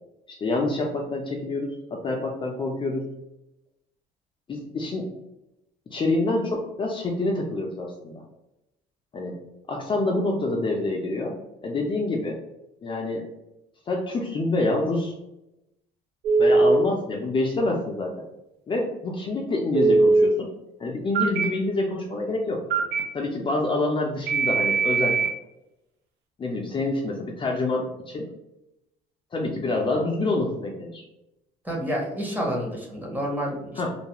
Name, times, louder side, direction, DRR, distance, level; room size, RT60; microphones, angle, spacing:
voice 1, 0.3-3.1 4.5-5.1 5.9-8.2 9.1-9.4 9.7-12.4 12.8-13.3 13.9-15.1 16.4-18.3 18.7-20.5 20.8-22.7 23.1-25.2 26.4-28.3 29.3-31.0 33.8-33.9, left 2 dB, 30° left, -1 dB, 0.4 m, -27 dB
Telephone, 16.2-16.8 19.7-20.3 21.1-21.4 22.7-23.0 24.3-25.3, right 3 dB, 80° right, 0.5 m, -19 dB
voice 2, 31.6-33.9, equal, 10° right, -2 dB, 0.8 m, -29 dB
2.5 x 2.3 x 2.9 m, 0.91 s
cardioid pair, 110°, 17 cm